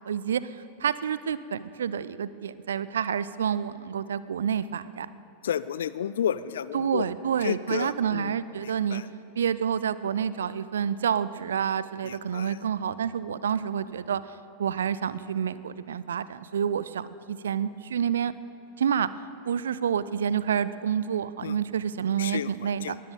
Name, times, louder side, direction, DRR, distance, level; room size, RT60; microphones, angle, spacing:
voice 1, 0.0-5.1 6.7-9.0 9.4-18.3 18.8-19.1 19.4-23.0, right 8 dB, 65° right, 16 dB, 0.4 m, -28 dB
voice 2, 5.4-7.1 7.4-8.3 8.9-9.0 12.0-12.6 21.4-21.6 22.2-22.5 22.8-22.9, left 9 dB, 65° left, 17 dB, 0.4 m, -31 dB
21.0 x 16.0 x 4.0 m, 2.8 s
figure-of-eight pair, 90°, 0 cm